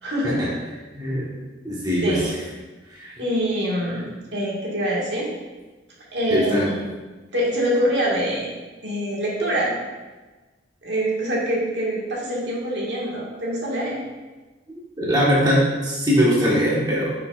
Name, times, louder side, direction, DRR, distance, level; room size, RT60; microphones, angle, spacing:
voice 1, 0.0-0.4 2.0-2.3 3.2-5.3 6.1-6.8 7.3-8.5 8.8-9.8 10.8-14.0, equal, 65° right, -4 dB, 1.7 m, -25 dB
voice 2, 0.9-1.3 1.6-2.4 2.9-3.1 6.3-6.7 15.0-17.1, equal, 20° right, -6 dB, 1.3 m, -21 dB
9.7 x 4.9 x 2.4 m, 1.2 s
head